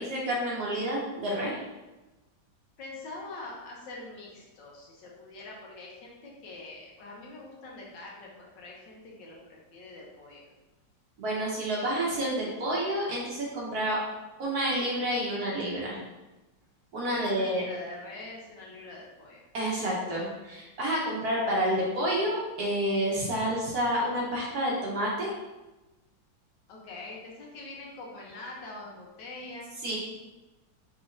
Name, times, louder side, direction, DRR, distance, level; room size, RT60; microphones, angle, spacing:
voice 1, 0.0-1.6 11.2-14.0 14.4-16.0 16.9-17.6 19.5-25.3 29.8-30.0, right 1 dB, 60° right, -4 dB, 1.3 m, -29 dB
voice 2, 2.8-10.5 17.0-19.4 26.7-29.7, left 2 dB, 70° left, -2 dB, 1.5 m, -44 dB
5.9 x 3.3 x 2.5 m, 1.1 s
omnidirectional pair, 2.1 m